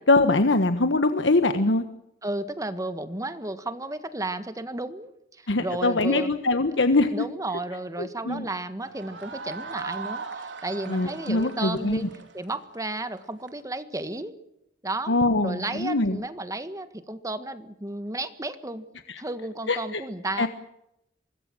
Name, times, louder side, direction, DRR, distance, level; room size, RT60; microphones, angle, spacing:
voice 1, 0.1-1.8 5.5-7.2 8.0-8.4 10.9-12.1 15.1-16.2 19.7-20.0 20.4-20.5, left 2 dB, 90° left, 9 dB, 1.3 m, -23 dB
voice 2, 2.2-6.3 7.1-12.1 12.3-14.3 14.8-18.9 19.2-20.5, right 2 dB, 20° right, 11 dB, 1.6 m, -33 dB
sound 1, 8.8-13.5, right 4 dB, 75° right, 3.3 m, -39 dB
24.5 x 20.5 x 7.5 m, 0.81 s
head